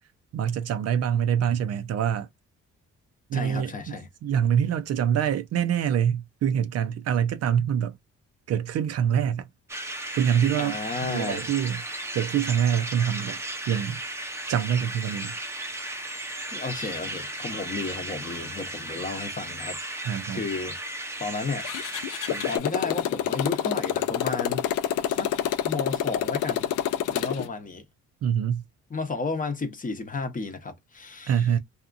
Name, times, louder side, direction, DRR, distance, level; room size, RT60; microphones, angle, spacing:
voice 1, 0.3-2.3 3.3-3.9 4.2-8.0 8.5-9.5 10.1-10.8 11.0-11.8 12.1-13.4 13.7-14.0 14.5-15.4 20.0-20.4 28.2-28.6 31.3-31.6, right 8 dB, 55° right, 0.4 m, -25 dB
voice 2, 3.3-4.1 10.6-11.5 16.2-19.8 20.3-20.8 21.2-21.7 22.3-25.3 25.6-26.7 27.1-27.8 28.9-31.5, left 3 dB, 25° left, 0.7 m, -33 dB
sound 1, 9.7-22.6, right 1 dB, 10° right, 0.5 m, -35 dB
Motorcycle, 21.6-27.5, left 11 dB, 85° left, 0.5 m, -27 dB
2.7 x 2.3 x 2.4 m
cardioid pair, 90°, 30 cm